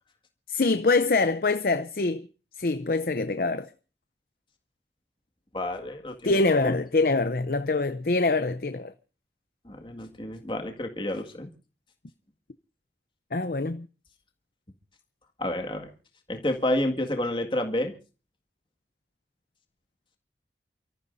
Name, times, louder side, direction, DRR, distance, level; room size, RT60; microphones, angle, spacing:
voice 1, 0.5-2.3 2.6-3.7 6.2-8.9 13.3-13.9, left 3 dB, 55° left, 0.6 m, -24 dB
voice 2, 5.5-6.7 9.6-11.5 15.4-15.9 16.3-17.9, left 1 dB, 25° left, 1.9 m, -30 dB
29.0 x 13.5 x 2.6 m
head